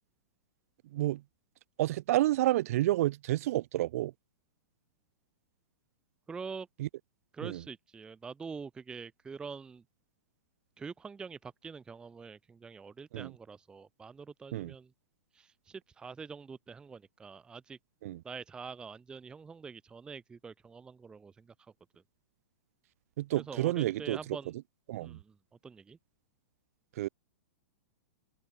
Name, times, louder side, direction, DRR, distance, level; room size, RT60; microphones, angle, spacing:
voice 1, 0.9-1.2 1.8-4.1 6.8-6.9 7.4-7.6 13.1-13.3 14.5-14.7 18.0-18.2 23.2-24.4 24.9-25.2 27.0-27.1, right 15 dB, 55° right, 1.5 m, -30 dB
voice 2, 6.3-6.7 7.3-9.8 10.8-14.9 15.3-17.8 18.2-21.5 23.4-24.5 25.0-25.3 25.6-26.0, right 5 dB, 10° right, 0.6 m, -45 dB
hypercardioid pair, 150°, 9 cm